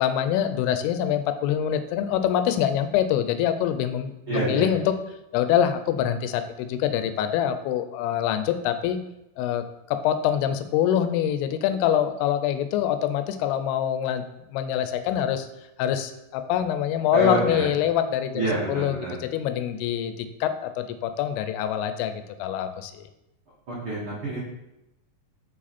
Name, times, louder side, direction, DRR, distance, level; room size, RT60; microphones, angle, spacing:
voice 1, 0.0-4.9 5.3-9.0 9.4-14.2 14.5-15.5 15.8-18.9 19.2-23.1, left 10 dB, 90° left, 10 dB, 2.6 m, -25 dB
voice 2, 4.3-4.7 17.1-17.7 18.3-19.1 23.7-24.4, right 2 dB, 80° right, -7 dB, 1.1 m, -27 dB
5.6 x 4.9 x 4.2 m, 0.89 s
omnidirectional pair, 4.5 m